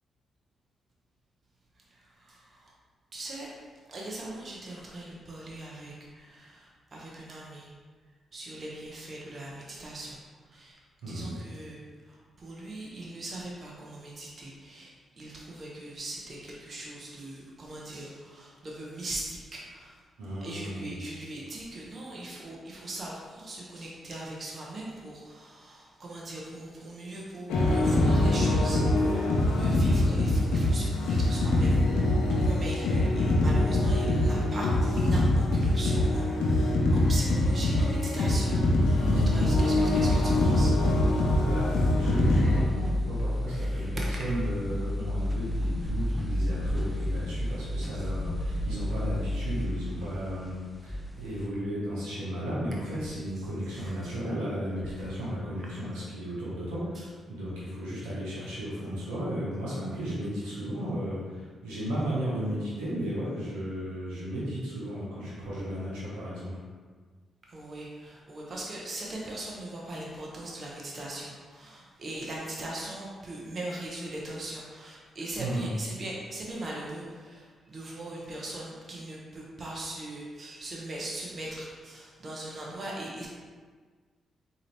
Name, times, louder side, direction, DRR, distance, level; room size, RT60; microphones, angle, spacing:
voice 1, 1.9-2.7 3.1-3.5 3.9-7.7 8.3-10.2 10.5-10.7 11.1-14.9 15.2-19.9 20.4-39.0 39.3-40.8 43.5-43.9 47.9-48.0 53.8-54.1 55.0-55.1 67.5-83.3, right 1 dB, 45° right, -3 dB, 0.8 m, -40 dB
voice 2, 11.0-11.4 20.2-20.9 38.9-39.7 41.4-66.6 75.4-75.7, equal, 90° right, -7 dB, 1.0 m, -34 dB
sound 1, 27.5-42.6, left 1 dB, 85° left, 0.6 m, -24 dB
sound 2, 38.8-51.5, left 1 dB, 10° left, 0.5 m, -31 dB
3.8 x 2.8 x 3.2 m, 1.5 s
supercardioid pair, 50°, 0 cm